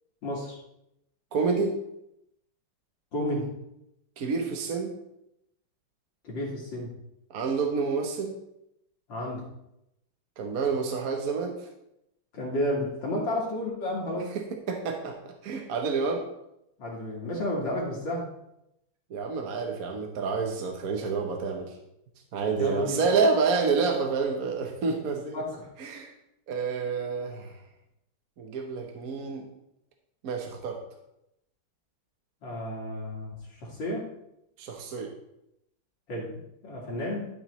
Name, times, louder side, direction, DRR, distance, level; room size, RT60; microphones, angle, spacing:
voice 1, 0.2-0.6 3.1-3.5 6.2-6.9 9.1-9.5 12.3-14.3 16.8-18.3 22.6-23.0 25.3-25.7 32.4-34.1 36.1-36.4 36.6-37.3, left 1 dB, 65° left, -4 dB, 2.8 m, -31 dB
voice 2, 1.3-1.7 4.2-4.9 7.3-8.4 10.4-11.7 14.7-16.2 19.1-21.7 22.3-25.4 25.8-26.1 26.5-27.5 28.4-29.4 30.2-30.8 34.6-35.1, right 4 dB, 55° right, 3 dB, 1.3 m, -28 dB
12.5 x 6.4 x 3.2 m, 0.82 s
omnidirectional pair, 2.2 m